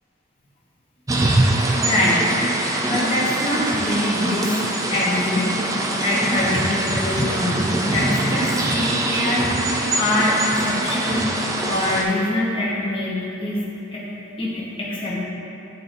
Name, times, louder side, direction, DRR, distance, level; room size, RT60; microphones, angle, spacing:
sound 1, 1.1-12.0, right 1 dB, 15° right, 0.3 m, -23 dB
voice 1, 1.7-2.4 2.9-4.6 4.9-5.5 6.0-9.7 9.9-11.3 11.6-13.6 13.9-14.0 14.4-15.2, left 1 dB, 25° left, -7 dB, 1.1 m, -24 dB
10.5 x 3.7 x 2.6 m, 2.9 s
head